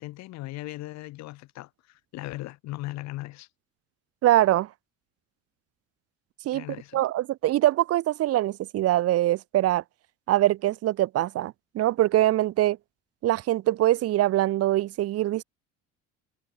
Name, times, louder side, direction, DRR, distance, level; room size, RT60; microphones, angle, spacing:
voice 1, 0.0-3.5 6.5-7.0, left 18 dB, 60° left, 6.7 m, -38 dB
voice 2, 4.2-4.7 6.4-6.6 6.9-9.8 10.3-12.8 13.2-15.4, right 14 dB, 50° right, 4.7 m, -23 dB
cardioid pair, 150°, 30 cm